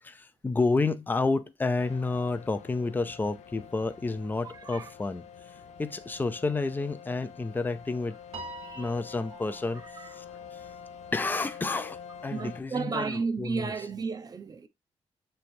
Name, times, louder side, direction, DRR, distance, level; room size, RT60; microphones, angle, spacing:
voice 1, 0.0-5.5 5.8-8.2 8.8-10.7 11.1-13.9, left 3 dB, 15° left, 0.5 m, -30 dB
sound 1, 1.8-12.6, left 7 dB, 85° left, 0.5 m, -47 dB
voice 2, 4.4-4.9 8.6-8.9 10.0-10.1 12.3-14.7, right 4 dB, 35° right, 0.7 m, -33 dB
Piano, 8.3-10.8, right 2 dB, 60° right, 1.2 m, -45 dB
7.1 x 3.3 x 4.3 m
wide cardioid pair, 130°, 11 cm